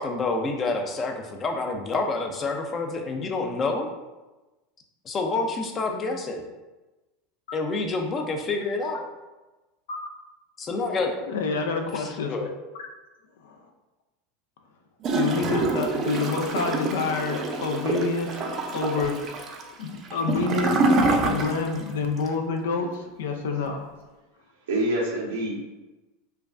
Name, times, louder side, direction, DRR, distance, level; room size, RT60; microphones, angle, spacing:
voice 1, 0.0-3.9 5.0-6.4 7.5-9.1 10.6-11.2 11.9-12.6, left 3 dB, 30° left, 3 dB, 0.6 m, -28 dB
voice 2, 11.3-12.5 13.4-13.5 15.1-19.2 19.8-23.9, left 4 dB, 75° left, 4 dB, 0.5 m, -28 dB
Gurgling / Toilet flush, 15.0-21.9 22.2-22.3, right 3 dB, 40° right, 0.5 m, -26 dB
voice 3, 19.7-20.1 24.5-25.6, right 1 dB, 85° right, -3 dB, 0.9 m, -28 dB
4.5 x 2.3 x 2.5 m, 1.1 s
hypercardioid pair, 95°, 0 cm